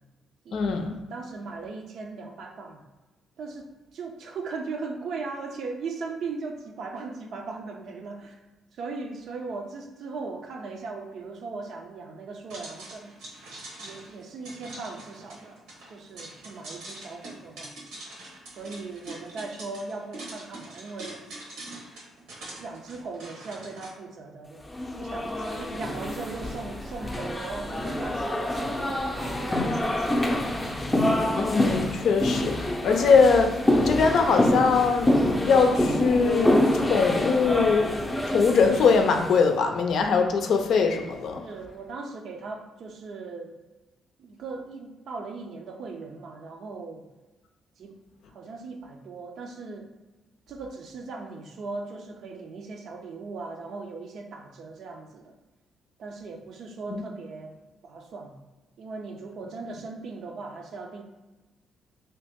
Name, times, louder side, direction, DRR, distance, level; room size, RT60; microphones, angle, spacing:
voice 1, 0.5-1.0 31.3-33.6 33.8-37.9 38.3-41.5 56.9-57.0, left 5 dB, 70° left, 4 dB, 0.5 m, -22 dB
voice 2, 1.1-2.8 3.4-8.4 8.7-13.1 13.8-15.6 15.9-17.7 18.5-21.3 22.6-24.6 25.0-30.5 41.4-43.5 44.2-47.0 47.8-48.0 48.3-49.9 50.5-55.3 56.0-57.6 57.8-58.4 58.8-61.0, right 4 dB, 65° right, 3 dB, 0.5 m, -38 dB
sound 1, 12.5-23.9, right 2 dB, 90° right, 1.1 m, -43 dB
sound 2, 24.7-39.4, left 1 dB, 15° left, 0.6 m, -26 dB
3.0 x 2.9 x 3.5 m, 1.1 s
cardioid pair, 90°, 0 cm